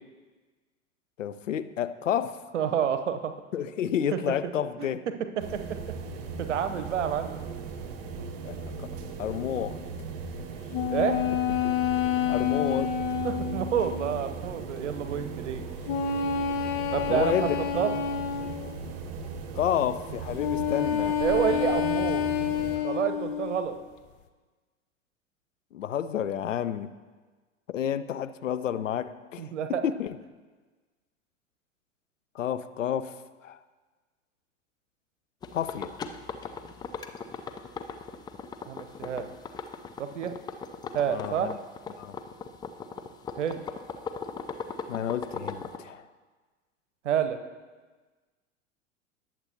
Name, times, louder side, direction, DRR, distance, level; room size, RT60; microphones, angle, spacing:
voice 1, 1.2-2.4 3.5-5.0 8.4-8.9 9.2-9.8 11.6-11.7 12.3-12.9 17.1-17.6 19.6-21.2 25.7-26.9 27.7-30.2 32.3-33.6 35.5-35.9 41.0-41.5 42.0-42.1 44.9-46.1, left 9 dB, 70° left, 13 dB, 0.6 m, -30 dB
voice 2, 2.5-3.3 3.8-4.2 4.8-4.9 5.5-5.6 6.4-7.4 10.9-11.2 13.2-15.6 16.9-17.9 21.2-22.2 22.7-23.8 29.4-29.8 38.7-39.3 40.0-40.3 40.9-41.5 43.4-43.6 47.0-47.4, right 8 dB, 65° right, 9 dB, 0.9 m, -28 dB
sound 1, 5.4-22.8, right 4 dB, 45° right, 1.2 m, -38 dB
sound 2, 10.7-14.3 15.9-18.8 20.4-23.7, left 8 dB, 45° left, 0.8 m, -28 dB
sound 3, 35.4-45.8, left 6 dB, 10° left, 0.4 m, -38 dB
19.0 x 7.6 x 2.9 m, 1.4 s
figure-of-eight pair, 85°, 39 cm